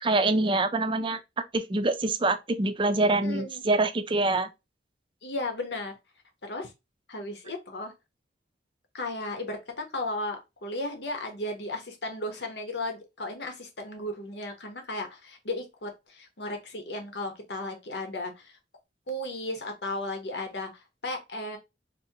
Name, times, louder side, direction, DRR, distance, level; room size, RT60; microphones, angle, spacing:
voice 1, 0.0-1.2 1.5-4.5, right 2 dB, 30° right, 0.5 m, -25 dB
voice 2, 3.2-3.6 5.2-6.0 6.4-6.7 7.1-7.9 8.9-18.5 19.1-21.6, left 2 dB, 70° left, 1.1 m, -35 dB
4.3 x 2.8 x 2.8 m
head